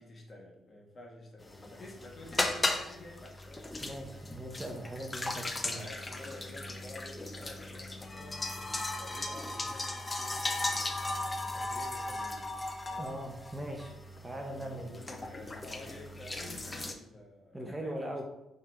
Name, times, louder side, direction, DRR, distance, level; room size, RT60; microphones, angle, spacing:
voice 1, 0.0-3.7 5.7-12.5 12.8-13.2 14.6-18.2, left 2 dB, 35° left, 0 dB, 1.7 m, -50 dB
sound 1, 1.4-16.9, left 2 dB, 20° left, 0.8 m, -37 dB
voice 2, 3.8-5.9 13.0-13.9 14.2-14.9 17.5-18.2, right 1 dB, 15° right, 2 dB, 1.0 m, -40 dB
5.5 x 3.8 x 4.4 m, 0.94 s
cardioid pair, 90°, 0 cm